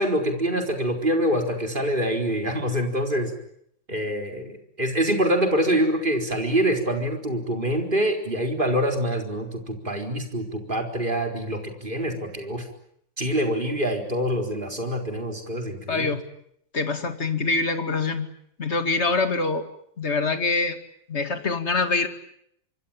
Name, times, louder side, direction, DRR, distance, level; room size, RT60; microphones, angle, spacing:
voice 1, 0.0-3.3 3.9-12.6 13.2-16.2, equal, 25° right, 4 dB, 4.5 m, -25 dB
voice 2, 15.9-16.2 16.7-18.3 18.6-19.7 20.0-20.8 21.1-22.1, left 3 dB, 35° left, 8 dB, 2.5 m, -24 dB
25.5 x 24.5 x 8.9 m, 0.72 s
omnidirectional pair, 2.0 m